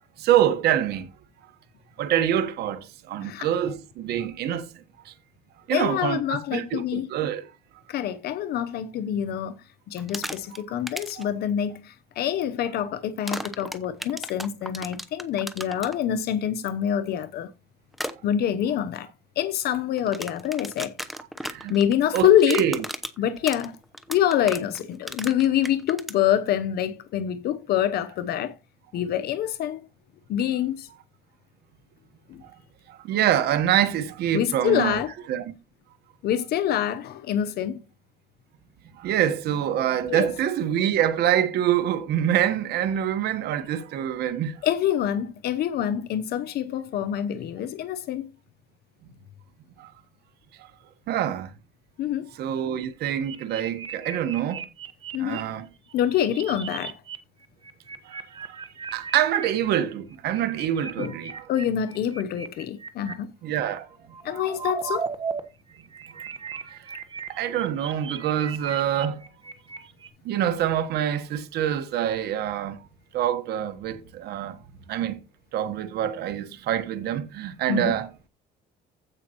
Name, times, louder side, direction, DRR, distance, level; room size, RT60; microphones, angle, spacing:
voice 1, 0.2-1.1 2.0-5.1 5.7-7.4 10.5-10.6 11.2-11.3 21.4-21.7 22.1-22.8 32.4-32.5 32.9-35.0 35.3-35.5 39.0-44.6 49.8-49.9 51.1-51.5 52.3-54.6 55.2-55.7 58.0-58.6 58.9-61.5 63.4-63.9 64.3-64.4 66.1-66.2 66.6-66.9 67.3-69.2 69.8-69.9 70.2-72.9 73.1-74.6 74.9-75.2 75.5-78.1, right 10 dB, 75° right, 1.2 m, -26 dB
voice 2, 5.7-7.1 7.9-17.5 18.2-19.1 19.4-20.9 21.7-22.6 23.2-23.8 24.1-28.6 28.9-29.8 30.3-30.9 32.3-32.4 34.3-35.1 36.2-37.8 40.1-40.3 44.6-48.3 52.0-52.3 55.1-55.5 55.9-57.0 61.0-61.1 61.5-63.3 64.2-65.1 77.7-77.9, left 10 dB, 70° left, 0.8 m, -26 dB
sound 1, 10.0-10.6 10.9-11.2 13.3-15.9 17.9-18.1 20.0-26.2, equal, ahead, 0.8 m, -34 dB
sound 2, 52.8-55.4 55.9-57.2 57.4-59.5 60.1-63.1 63.9-65.4 65.7-70.1, right 5 dB, 30° right, 1.2 m, -36 dB
15.5 x 5.3 x 3.0 m
cardioid pair, 110°, 17 cm